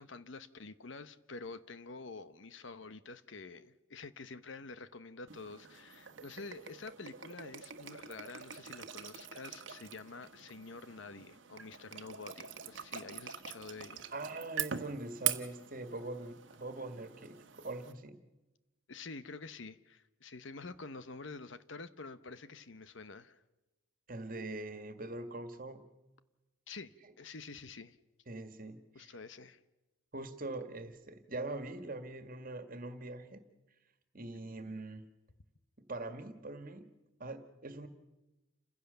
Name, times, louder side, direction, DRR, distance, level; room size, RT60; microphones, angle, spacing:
voice 1, 0.0-14.1 18.9-23.4 26.7-28.0 28.9-29.6 34.2-34.3, left 3 dB, 65° left, 1.0 m, -48 dB
sound 1, 5.3-17.9, right 10 dB, 65° right, 1.3 m, -43 dB
voice 2, 14.1-18.2 24.1-25.9 28.3-29.1 30.1-33.4 34.1-35.1 35.9-36.9 37.2-37.9, right 2 dB, 45° right, 1.9 m, -43 dB
29.0 x 16.0 x 6.9 m
head